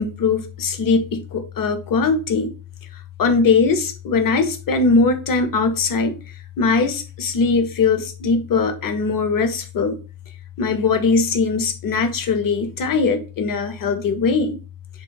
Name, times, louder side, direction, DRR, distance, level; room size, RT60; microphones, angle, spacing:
voice 1, 0.0-2.5 3.2-6.2 6.6-10.0 10.6-14.6, left 4 dB, 45° left, 8 dB, 0.7 m, -20 dB
3.0 x 2.3 x 3.8 m, 0.34 s
cardioid pair, 115°, 49 cm